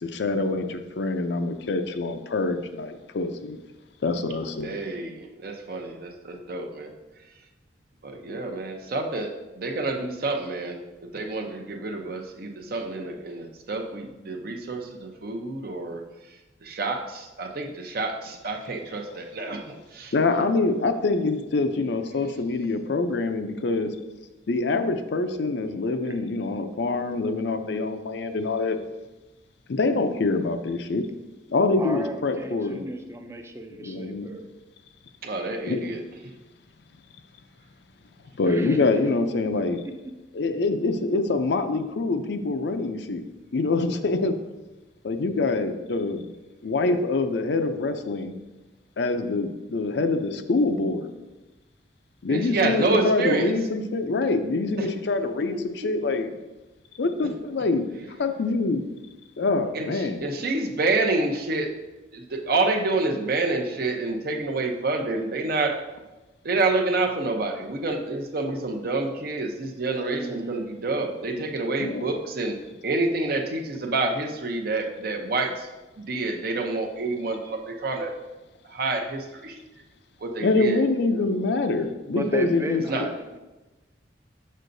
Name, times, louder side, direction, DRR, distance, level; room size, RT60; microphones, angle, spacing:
voice 1, 0.0-3.6 4.0-4.8 20.1-23.9 24.5-28.8 29.7-31.0 31.5-32.8 33.8-34.3 35.7-35.8 38.4-39.8 40.3-44.3 45.0-46.3 46.6-48.4 49.0-51.1 52.2-56.3 57.0-58.8 59.4-60.2 71.8-72.1 80.4-82.8, left 3 dB, 65° left, 8 dB, 0.5 m, -25 dB
voice 2, 4.6-7.0 8.0-16.0 16.6-20.1 35.2-36.3 52.3-53.6 54.8-54.9 55.5-55.6 59.7-61.7 62.1-65.8 66.4-75.7 76.0-78.1 78.6-79.6 80.2-80.8 81.1-81.3 82.9-83.0, right 3 dB, 55° right, 3 dB, 0.7 m, -28 dB
voice 3, 31.8-34.5 38.4-39.2 39.8-39.9 70.0-70.9 82.0-83.4, right 1 dB, 15° right, 6 dB, 0.5 m, -35 dB
6.6 x 6.4 x 2.6 m, 1.1 s
head